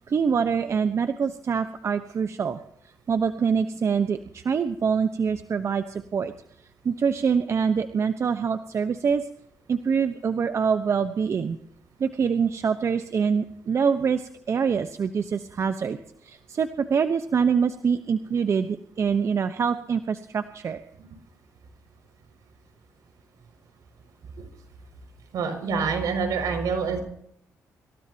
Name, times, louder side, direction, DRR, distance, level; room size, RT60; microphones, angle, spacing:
voice 1, 0.0-2.6 3.1-6.3 6.8-9.3 9.7-11.6 12.0-20.8, right 6 dB, 50° right, 8 dB, 1.0 m, -25 dB
voice 2, 25.3-27.0, right 5 dB, 75° right, 4 dB, 6.2 m, -26 dB
26.5 x 16.5 x 2.9 m, 0.73 s
cardioid pair, 85°, 6 cm